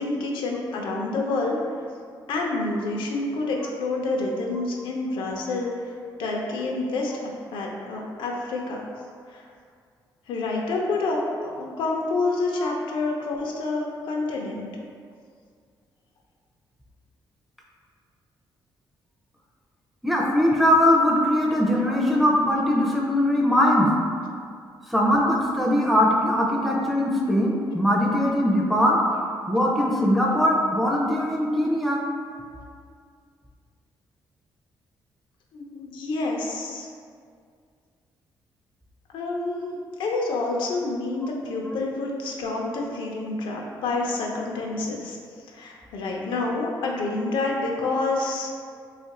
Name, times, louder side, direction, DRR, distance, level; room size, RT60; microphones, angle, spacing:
voice 1, 0.0-1.6 2.3-5.7 6.2-7.1 7.5-8.8 9.3-9.4 10.3-14.7 35.5-36.9 39.1-45.2 45.5-48.5, left 3 dB, 85° left, -1 dB, 0.5 m, -28 dB
voice 2, 20.0-23.9 24.9-29.0 29.5-32.0 41.7-41.8, left 1 dB, ahead, -3 dB, 0.4 m, -21 dB
2.8 x 2.4 x 4.0 m, 2.2 s
cardioid pair, 150°, 8 cm